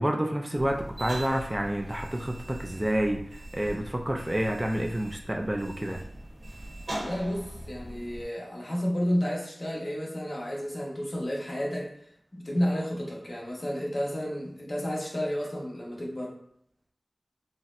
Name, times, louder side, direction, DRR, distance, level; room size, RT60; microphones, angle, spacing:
voice 1, 0.0-6.0, right 1 dB, 20° right, 2 dB, 0.3 m, -29 dB
sound 1, 0.5-8.2, right 1 dB, 70° right, 1.1 m, -41 dB
voice 2, 6.9-12.0 12.3-16.4, equal, 45° left, -3 dB, 0.8 m, -31 dB
4.0 x 2.0 x 2.4 m, 0.70 s
wide cardioid pair, 75°, 0 cm